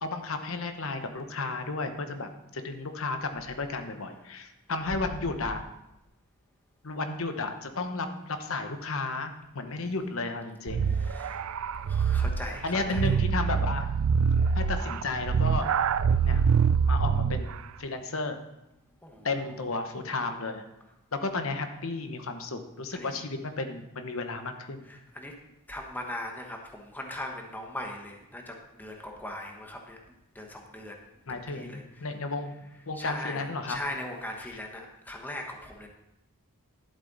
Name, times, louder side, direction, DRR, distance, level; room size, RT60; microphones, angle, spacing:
voice 1, 0.0-5.6 6.8-10.9 12.6-13.9 14.5-15.7 16.2-16.4 16.8-18.4 19.2-20.6 21.1-24.9 31.3-32.5 32.9-33.8 34.5-34.6, left 3 dB, 65° left, 7 dB, 1.0 m, -33 dB
sound 1, 10.7-17.6, right 6 dB, 65° right, 0.4 m, -25 dB
voice 2, 10.8-11.4 11.8-13.2 19.0-19.7 22.9-23.3 24.8-25.3 25.7-30.0 30.3-31.0 31.3-32.1 32.9-35.9, left 1 dB, 10° left, 2 dB, 1.1 m, -39 dB
11.5 x 7.5 x 4.0 m, 0.90 s
head